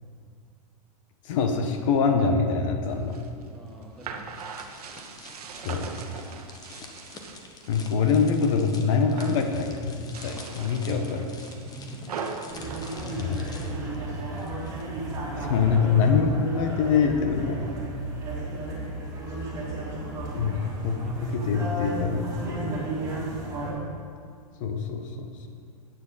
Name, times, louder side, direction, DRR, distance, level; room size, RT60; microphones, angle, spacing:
voice 1, 1.2-3.2 5.6-5.9 7.7-10.0 10.2-11.3 13.2-13.4 15.4-17.6 20.3-22.3 24.6-25.5, left 5 dB, 60° left, 5 dB, 1.2 m, -24 dB
sound 1, 2.9-7.8 8.2-8.7 9.0-9.5 10.0-13.9, right 5 dB, 85° right, 1.1 m, -40 dB
voice 2, 3.5-4.5 11.6-12.1 12.9-14.2 20.7-21.2, right 1 dB, ahead, -1 dB, 1.4 m, -45 dB
sound 2, 4.3-15.2 15.4-15.7, left 3 dB, 20° left, 1.2 m, -46 dB
sound 3, 12.5-23.7, right 1 dB, 20° right, 3.1 m, -33 dB
12.5 x 9.4 x 4.1 m, 2.2 s
hypercardioid pair, 135°, 19 cm